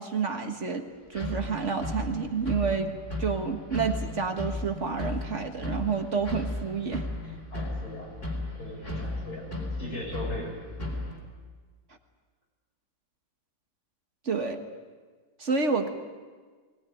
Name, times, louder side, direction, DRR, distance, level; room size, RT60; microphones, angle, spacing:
voice 1, 0.0-2.9 3.2-7.1 14.2-14.6 15.4-15.9, right 5 dB, 50° right, 5 dB, 1.7 m, -29 dB
sound 1, 1.1-11.2, left 2 dB, 35° left, 4.2 m, -35 dB
voice 2, 7.5-8.1 8.6-9.5 9.8-10.6, left 1 dB, 75° left, -2 dB, 7.2 m, -38 dB
20.5 x 18.5 x 9.8 m, 1.4 s
omnidirectional pair, 1.7 m